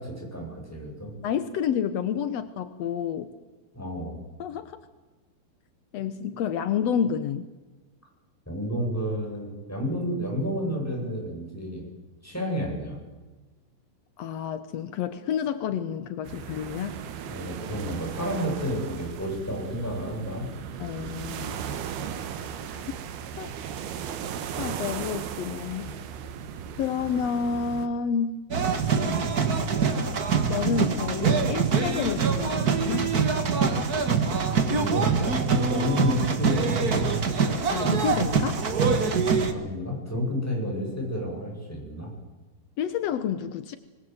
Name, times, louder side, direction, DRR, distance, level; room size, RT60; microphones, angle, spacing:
voice 1, 0.0-1.1 3.7-4.2 8.5-11.8 12.2-13.0 17.3-20.5 28.9-29.3 34.7-37.3 39.5-42.1, equal, 5° left, -1 dB, 7.8 m, -31 dB
voice 2, 1.2-3.3 4.4-4.8 5.9-7.5 14.2-17.0 20.8-21.6 22.7-22.9 23.4-23.5 24.6-25.9 26.8-28.4 30.5-33.2 37.7-38.6 42.8-43.8, left 7 dB, 80° left, 11 dB, 1.4 m, -29 dB
sound 1, 16.3-27.9, right 8 dB, 80° right, 3.4 m, -36 dB
sound 2, 28.5-39.5, right 5 dB, 50° right, 1.1 m, -24 dB
26.5 x 20.5 x 8.0 m, 1.2 s
omnidirectional pair, 4.4 m